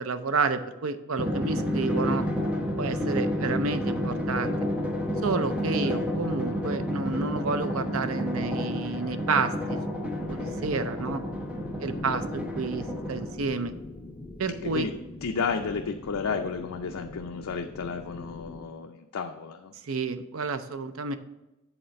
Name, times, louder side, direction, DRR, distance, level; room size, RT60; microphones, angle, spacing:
voice 1, 0.0-2.2 2.8-4.6 5.2-9.8 10.3-11.2 11.8-13.7 14.4-14.9 19.8-21.2, right 4 dB, 70° right, 10 dB, 0.6 m, -30 dB
Drum, 1.2-13.6, left 1 dB, 5° right, 0.9 m, -30 dB
sound 1, 10.2-18.7, left 1 dB, 15° left, 0.5 m, -42 dB
voice 2, 11.8-12.1 14.6-14.9 15.2-19.7, left 5 dB, 85° left, 4 dB, 0.5 m, -32 dB
7.9 x 4.2 x 5.7 m, 0.96 s
head